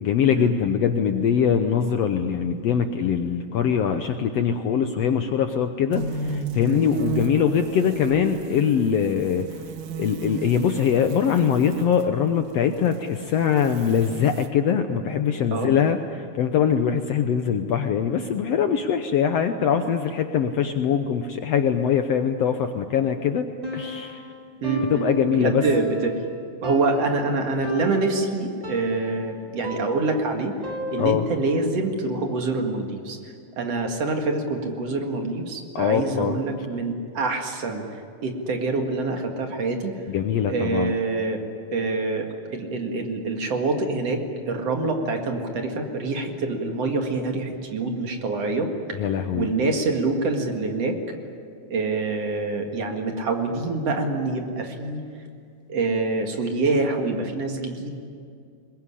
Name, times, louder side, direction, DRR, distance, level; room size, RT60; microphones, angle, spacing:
voice 1, 0.0-9.5 10.0-24.2 24.9-25.6 31.0-31.2 35.7-36.4 40.1-41.0 48.9-49.5, left 7 dB, 70° left, 7 dB, 1.7 m, -22 dB
sound 1, 5.9-12.0 12.6-14.5, right 4 dB, 80° right, 2.8 m, -34 dB
Piano, 23.6-31.5, equal, 10° right, 2.5 m, -34 dB
voice 2, 24.6-25.1 25.3-26.2 26.6-30.5 30.9-40.0 40.5-41.4 41.7-48.7 49.3-51.0 51.7-55.0 55.7-57.9, right 3 dB, 55° right, 3 dB, 2.9 m, -26 dB
22.0 x 21.5 x 10.0 m, 2.3 s
omnidirectional pair, 3.7 m